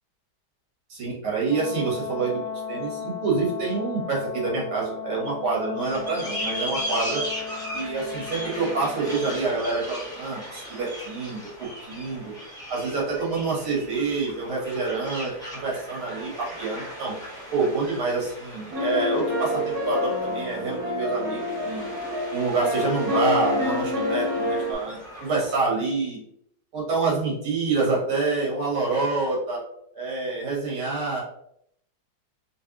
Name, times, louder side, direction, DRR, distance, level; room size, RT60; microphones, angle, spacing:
voice 1, 0.9-2.4 2.7-7.2 7.7-12.3 12.7-17.1 17.5-21.9 22.3-26.2 26.7-29.6 29.9-31.2, right 4 dB, 85° right, -4 dB, 2.3 m, -27 dB
Brass instrument, 1.4-9.4, left 6 dB, 70° left, 1.2 m, -36 dB
sound 1, 5.8-25.7, equal, 5° left, 0.7 m, -38 dB
sound 2, 18.7-24.7, left 1 dB, 55° right, 1.5 m, -27 dB
4.0 x 3.2 x 2.9 m, 0.72 s
omnidirectional pair, 2.3 m